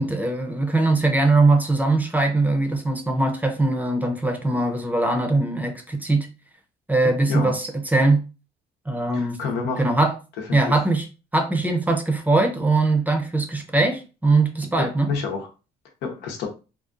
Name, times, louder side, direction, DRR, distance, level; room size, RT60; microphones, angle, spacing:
voice 1, 0.0-6.3 6.9-8.2 8.9-9.4 9.8-10.2 10.5-11.1 11.3-15.1, right 2 dB, 10° right, 0.6 m, -21 dB
voice 2, 9.1-9.9 10.4-10.7 14.8-15.5 16.0-16.5, left 5 dB, 90° left, 0.9 m, -29 dB
3.7 x 2.4 x 2.5 m
cardioid pair, 110°, 17 cm